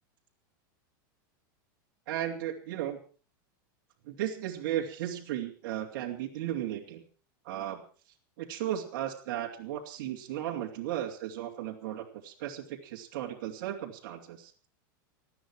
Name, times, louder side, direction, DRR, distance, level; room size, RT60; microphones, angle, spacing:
voice 1, 2.1-3.0 4.0-7.0 7.4-7.8 8.4-14.5, right 11 dB, 60° right, 0 dB, 2.8 m, -35 dB
19.0 x 14.0 x 4.8 m, 0.39 s
supercardioid pair, 160°, 11 cm